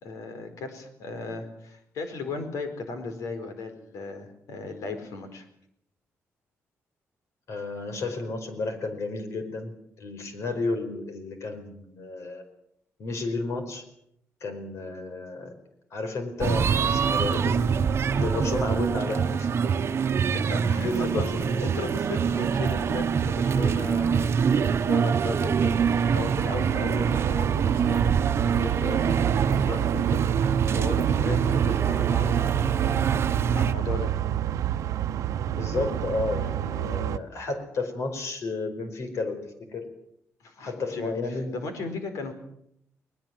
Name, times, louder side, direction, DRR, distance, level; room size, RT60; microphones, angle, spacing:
voice 1, 0.0-5.5 20.3-28.1 28.6-34.1 40.4-42.3, left 3 dB, 90° left, 8 dB, 4.6 m, -36 dB
voice 2, 7.5-12.4 13.0-13.8 14.4-15.5 15.9-17.6 18.1-19.7 20.8-21.6 35.5-39.9 40.6-41.5, left 3 dB, 65° left, 7 dB, 5.0 m, -32 dB
sound 1, 16.4-33.7, right 6 dB, 50° right, 1.0 m, -25 dB
sound 2, 25.7-37.2, right 11 dB, 85° right, 0.9 m, -28 dB
20.5 x 20.5 x 7.8 m, 0.74 s
cardioid pair, 110°, 5 cm